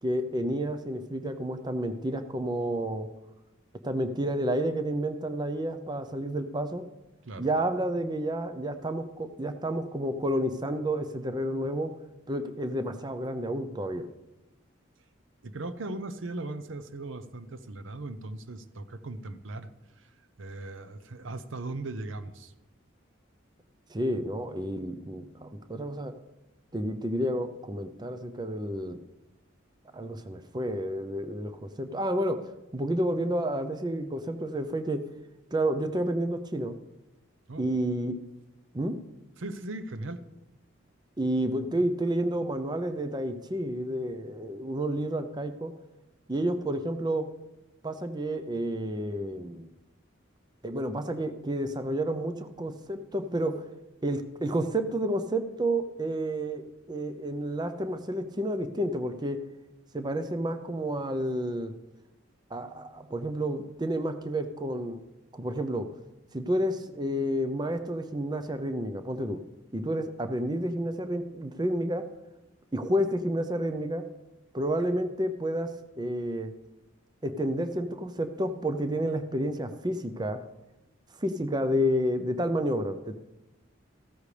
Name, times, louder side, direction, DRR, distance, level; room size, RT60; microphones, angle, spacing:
voice 1, 0.0-3.1 3.8-6.8 7.4-11.9 12.3-14.1 23.9-26.1 26.7-29.0 29.9-32.4 32.7-35.0 35.5-36.8 37.6-38.2 38.7-38.9 41.2-45.7 46.3-47.3 47.8-49.7 50.6-53.6 54.0-59.4 59.9-61.7 62.5-65.0 65.3-65.9 66.3-69.4 69.7-72.0 72.7-74.0 74.5-75.7 76.0-76.5 77.2-80.4 81.2-83.1, right 1 dB, 20° right, 9 dB, 0.6 m, -30 dB
voice 2, 15.4-19.7 20.0-22.5 37.5-37.7 39.4-40.3, right 2 dB, 80° right, 12 dB, 0.7 m, -38 dB
14.5 x 13.5 x 3.3 m, 0.99 s
head